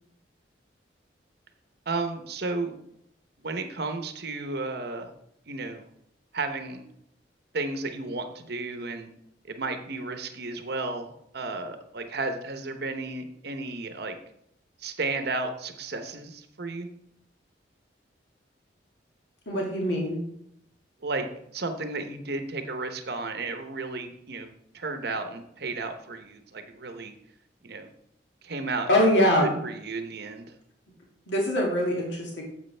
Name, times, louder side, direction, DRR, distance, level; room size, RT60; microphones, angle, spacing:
voice 1, 1.9-2.8 3.4-5.1 5.5-5.9 6.3-6.8 7.5-9.1 9.5-14.2 14.8-16.9 21.0-21.3 21.5-27.1 27.6-27.9 28.4-28.9 29.6-30.5, right 3 dB, 60° right, 7 dB, 0.8 m, -33 dB
voice 2, 19.5-20.2 28.9-29.5 31.3-32.4, left 1 dB, 85° left, -2 dB, 2.0 m, -23 dB
9.6 x 7.6 x 3.3 m, 0.75 s
head